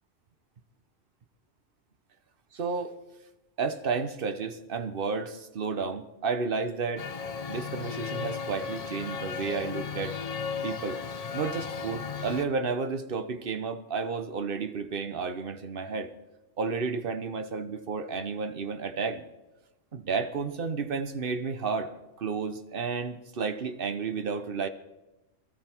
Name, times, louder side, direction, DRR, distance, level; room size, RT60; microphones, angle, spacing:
voice 1, 2.5-3.0 3.6-7.1 7.5-10.2 10.6-11.0 11.3-16.1 16.6-19.2 19.9-21.9 22.2-24.7, right 5 dB, 50° right, 1.1 m, -32 dB
Male speech man speaking, 7.0-12.5, left 6 dB, 35° left, 0.7 m, -35 dB
22.0 x 13.5 x 4.5 m
omnidirectional pair, 1.3 m